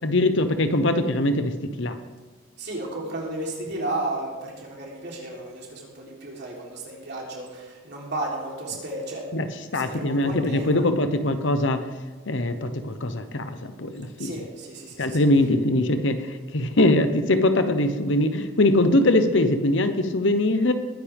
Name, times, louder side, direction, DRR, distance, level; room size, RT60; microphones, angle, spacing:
voice 1, 0.0-2.0 9.3-9.5 9.7-11.8 12.3-14.4 15.0-20.7, left 1 dB, 60° left, 9 dB, 1.0 m, -22 dB
voice 2, 2.6-9.3 9.5-10.9 14.2-15.2, right 2 dB, 55° right, -3 dB, 3.6 m, -33 dB
21.0 x 9.7 x 3.6 m, 1.3 s
head